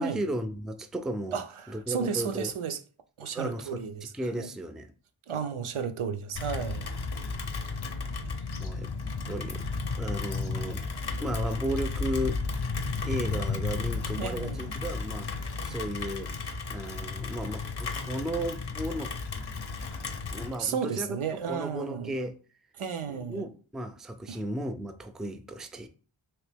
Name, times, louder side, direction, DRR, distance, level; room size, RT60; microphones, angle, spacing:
voice 1, 0.0-1.4 1.7-2.5 3.2-3.8 4.1-4.9 8.6-8.9 9.3-9.6 10.0-10.8 11.2-12.8 13.0-19.1 20.3-21.2 21.5-22.4 23.1-25.9, right 1 dB, ahead, 0.3 m, -34 dB
voice 2, 1.3-2.8 3.2-4.1 4.4-4.5 5.3-6.8 14.2-14.7 20.6-22.2 22.8-23.4 24.3-24.4, right 6 dB, 80° right, 0.5 m, -33 dB
Rain, 6.4-20.6, left 4 dB, 55° left, 0.6 m, -33 dB
3.0 x 2.9 x 3.4 m
wide cardioid pair, 45°, 49 cm